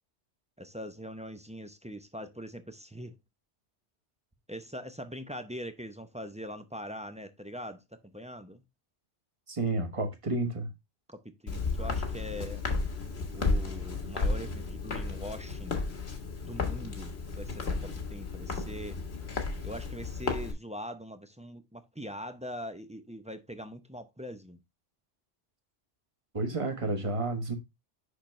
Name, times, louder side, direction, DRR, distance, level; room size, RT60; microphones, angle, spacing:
voice 1, 0.6-3.2 4.5-8.6 11.1-12.6 13.3-15.8 16.5-19.0 19.6-24.6, equal, 10° right, 0.4 m, -42 dB
voice 2, 9.5-10.7 26.3-27.5, right 2 dB, 30° right, 1.1 m, -31 dB
Walk footsteps, 11.5-20.5, left 3 dB, 60° left, 1.6 m, -33 dB
6.5 x 5.8 x 3.1 m
omnidirectional pair, 1.2 m